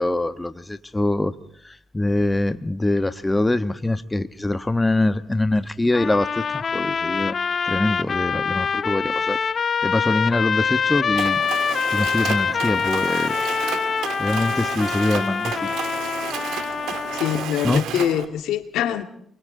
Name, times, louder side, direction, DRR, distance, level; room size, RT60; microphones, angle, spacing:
voice 1, 0.0-1.3 1.9-7.3 7.7-9.4 9.8-11.4 11.9-13.4 14.2-15.5 17.6-17.8, left 2 dB, 15° left, 1.3 m, -23 dB
sound 1, 5.9-17.5, left 6 dB, 45° left, 0.8 m, -25 dB
Mechanisms, 11.2-18.3, right 10 dB, 85° right, 2.5 m, -32 dB
voice 2, 17.1-19.0, left 10 dB, 85° left, 2.0 m, -24 dB
29.0 x 24.0 x 3.9 m
cardioid pair, 90°, 0 cm